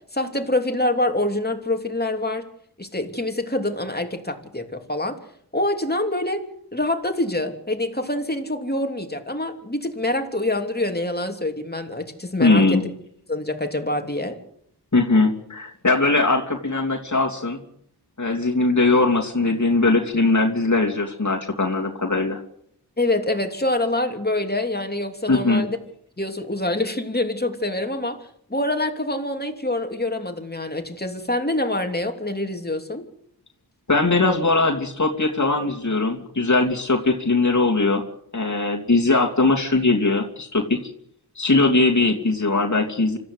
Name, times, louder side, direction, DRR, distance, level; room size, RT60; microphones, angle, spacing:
voice 1, 0.1-2.5 2.8-5.2 5.5-6.4 6.7-12.8 13.3-14.4 23.0-25.8 26.2-33.0, left 1 dB, 25° left, 5 dB, 3.0 m, -25 dB
voice 2, 12.4-12.8 14.9-17.6 18.2-22.4 25.3-25.6 33.9-38.0 38.3-40.8 41.4-43.2, left 3 dB, 45° left, 0 dB, 2.9 m, -20 dB
26.5 x 14.0 x 8.1 m, 0.71 s
wide cardioid pair, 55°, 42 cm